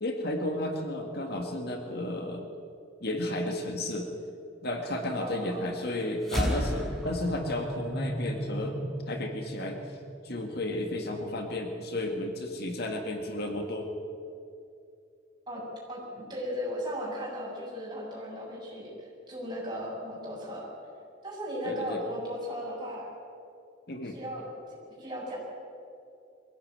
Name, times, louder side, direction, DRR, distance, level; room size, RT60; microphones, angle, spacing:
voice 1, 0.0-2.5 3.0-4.1 4.6-8.8 9.1-10.0 10.2-13.9 21.6-22.0 23.9-24.2, left 1 dB, 55° left, 3 dB, 2.0 m, -33 dB
voice 2, 5.2-5.6 15.5-20.7 21.2-23.1 24.0-25.4, equal, 25° right, -5 dB, 7.5 m, -37 dB
sound 1, 6.2-10.8, equal, ahead, 6.1 m, -34 dB
23.0 x 16.0 x 9.0 m, 2.5 s
head